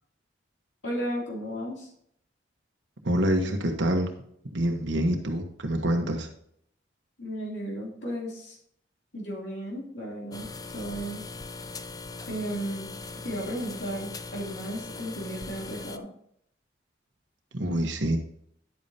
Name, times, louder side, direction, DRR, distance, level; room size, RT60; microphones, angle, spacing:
voice 1, 0.8-1.9 7.2-8.6 9.1-11.2 12.3-12.9 13.2-16.1, equal, 75° left, -3 dB, 2.9 m, -34 dB
voice 2, 3.0-4.1 4.5-6.3 17.5-18.2, right 1 dB, 75° right, 3 dB, 1.1 m, -26 dB
sound 1, 10.3-16.0, left 3 dB, 20° left, 0.4 m, -40 dB
10.5 x 8.5 x 2.8 m, 0.69 s
head